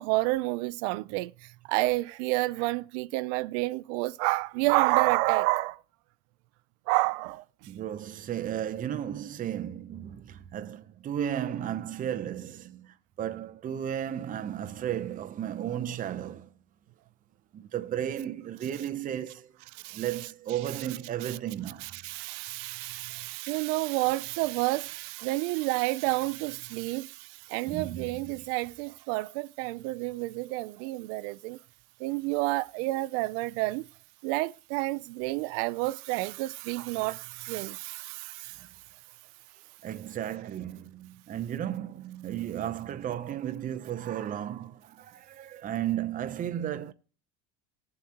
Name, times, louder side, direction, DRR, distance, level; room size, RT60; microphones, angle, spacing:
voice 1, 0.0-1.3 1.7-5.8 6.9-7.4 19.7-20.0 21.2-21.4 21.8-31.6 32.0-33.8 34.2-38.7, right 21 dB, 80° right, 0.5 m, -29 dB
voice 2, 7.7-16.5 17.5-19.5 19.9-21.9 27.7-28.4 39.8-46.9, right 10 dB, 25° right, 0.6 m, -34 dB
20.0 x 7.2 x 2.9 m
cardioid pair, 150°, 35 cm